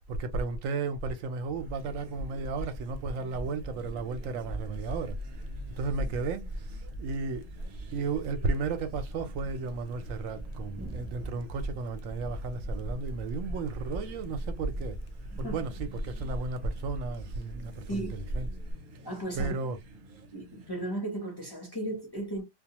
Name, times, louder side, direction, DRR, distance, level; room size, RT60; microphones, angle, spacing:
voice 1, 0.1-5.5 5.8-7.5 7.9-15.0 15.4-18.5 19.4-19.8, right 4 dB, 80° right, 1.0 m, -34 dB
sound 1, 1.5-21.0, right 1 dB, 60° right, 0.9 m, -52 dB
sound 2, 1.6-18.7, equal, 60° left, 0.5 m, -39 dB
Thunder, 10.8-20.2, right 1 dB, 15° right, 0.3 m, -52 dB
voice 2, 19.0-19.5 20.3-22.4, right 1 dB, 25° left, 0.7 m, -35 dB
2.3 x 2.2 x 2.8 m
omnidirectional pair, 1.4 m